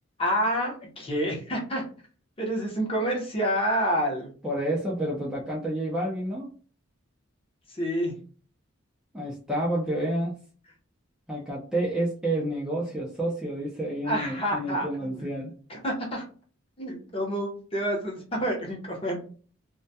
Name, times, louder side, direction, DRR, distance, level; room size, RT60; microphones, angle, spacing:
voice 1, 0.2-1.8 2.4-4.3 7.7-8.2 14.1-15.3 15.7-16.2 16.8-19.1, equal, 25° left, -1 dB, 0.7 m, -28 dB
voice 2, 4.4-6.5 9.1-10.3 11.3-15.5, right 1 dB, 5° right, -5 dB, 0.4 m, -29 dB
2.2 x 2.1 x 2.6 m, 0.40 s
head